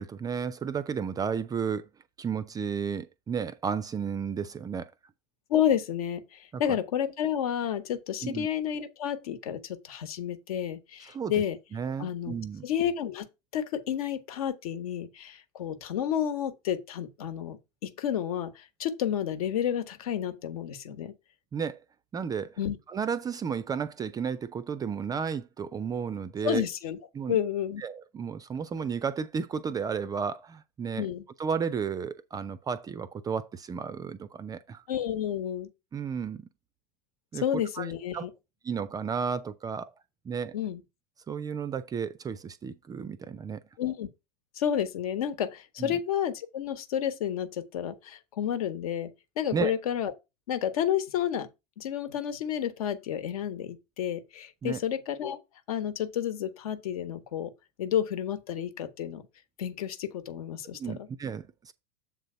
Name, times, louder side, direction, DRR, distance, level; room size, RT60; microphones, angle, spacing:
voice 1, 0.0-1.9 2.2-4.9 6.5-6.8 8.2-8.5 11.1-11.4 11.7-12.6 21.5-21.8 22.1-22.6 22.9-26.7 27.1-27.4 27.8-31.1 31.4-34.8 35.9-36.5 37.3-37.4 37.8-38.3 38.6-39.9 40.3-40.6 41.3-43.6 45.8-46.0 49.5-49.7 54.6-54.8 60.8-61.7, right 6 dB, 20° right, 0.4 m, -33 dB
voice 2, 5.5-11.6 12.0-12.4 12.6-13.3 13.5-21.1 22.6-22.8 26.4-27.0 27.3-27.8 31.0-31.2 34.9-35.7 37.4-38.3 40.5-40.8 43.8-44.1 44.6-49.1 49.4-50.1 50.5-51.5 51.8-55.4 55.7-57.5 57.8-59.2 59.6-61.1, left 9 dB, 60° left, 1.2 m, -30 dB
7.5 x 3.9 x 5.6 m
figure-of-eight pair, 85°, 21 cm